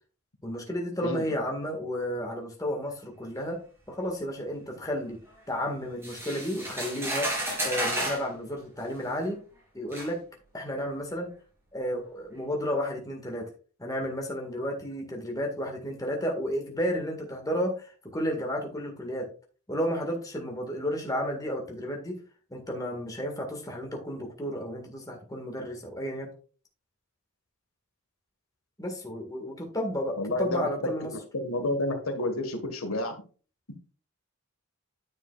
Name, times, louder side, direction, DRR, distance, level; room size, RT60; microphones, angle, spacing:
voice 1, 0.4-3.6 3.9-5.2 5.5-7.3 7.6-9.4 9.7-10.2 10.5-11.3 11.7-13.5 13.8-19.3 19.7-22.2 22.5-26.3 28.8-31.2, equal, 15° left, 2 dB, 1.8 m, -32 dB
sound 1, 6.0-8.3 9.2-9.3 9.9-10.1, right 1 dB, 10° right, 3.2 m, -31 dB
voice 2, 30.2-30.9 31.3-33.2, left 1 dB, 80° left, 6 dB, 1.5 m, -30 dB
9.8 x 7.1 x 2.4 m, 0.37 s
head